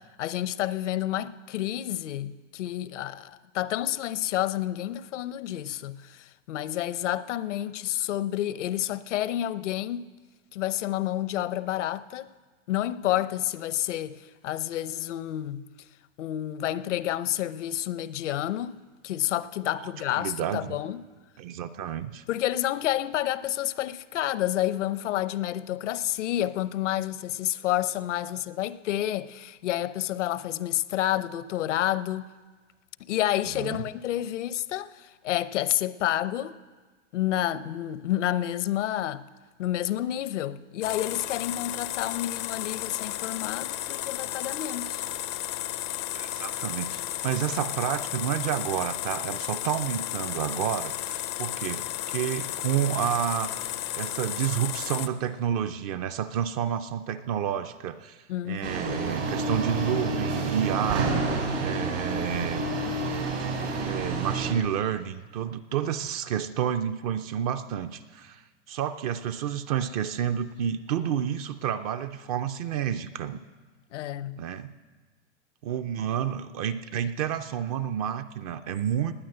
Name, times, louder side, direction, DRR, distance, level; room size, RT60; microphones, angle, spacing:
voice 1, 0.2-10.1 10.5-12.3 12.7-15.6 16.2-21.0 22.3-32.3 33.1-36.6 37.1-39.2 39.6-45.0 58.3-59.1 73.9-74.4, left 13 dB, 70° left, 0.8 m, -29 dB
voice 2, 19.8-20.8 21.4-22.2 33.6-33.8 46.1-62.8 63.8-73.4 74.4-74.7 75.6-79.1, right 9 dB, 30° right, 0.4 m, -30 dB
sound 1, 40.8-55.1, left 14 dB, 25° left, 0.4 m, -33 dB
sound 2, 58.6-64.5, right 3 dB, 85° right, 5.2 m, -29 dB
18.5 x 9.5 x 7.8 m
hypercardioid pair, 145°, 37 cm